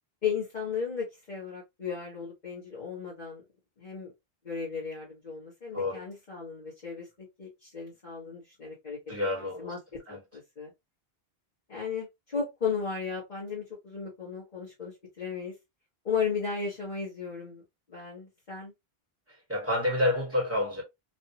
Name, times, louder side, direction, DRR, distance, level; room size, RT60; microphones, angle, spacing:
voice 1, 0.2-3.4 3.8-4.1 4.4-9.0 9.6-10.7 11.7-15.5 16.0-17.6 17.9-18.7, left 6 dB, 45° left, 1.5 m, -35 dB
voice 2, 5.7-6.0 9.1-9.7 10.1-10.2 19.5-20.8, left 1 dB, 15° right, 1.7 m, -28 dB
3.2 x 2.7 x 2.8 m
omnidirectional pair, 1.1 m